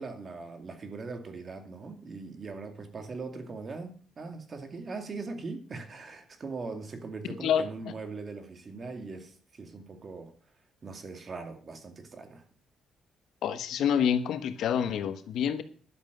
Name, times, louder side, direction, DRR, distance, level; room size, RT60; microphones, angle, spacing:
voice 1, 0.0-10.3 10.8-12.5, right 4 dB, 40° right, 2.3 m, -40 dB
voice 2, 13.4-15.6, left 8 dB, 75° left, 1.2 m, -27 dB
12.0 x 7.6 x 6.7 m
cardioid pair, 90°, 0 cm